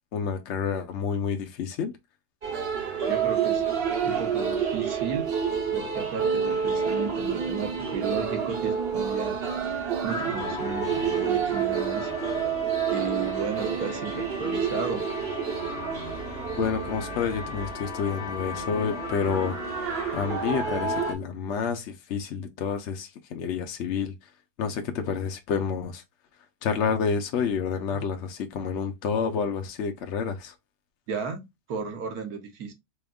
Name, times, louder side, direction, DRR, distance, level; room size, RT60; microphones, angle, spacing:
voice 1, 0.1-1.9 16.6-24.3 24.6-26.0 26.6-30.5, left 6 dB, 70° left, 0.6 m, -29 dB
sound 1, 2.4-21.1, right 7 dB, 45° right, 0.9 m, -29 dB
voice 2, 3.1-3.6 4.0-5.3 5.7-9.4 10.0-12.1 12.9-15.1 27.9-28.1 31.1-32.7, right 5 dB, 65° right, 1.2 m, -34 dB
sound 2, 10.4-21.0, left 5 dB, 40° left, 0.8 m, -38 dB
4.3 x 3.4 x 2.3 m
omnidirectional pair, 1.9 m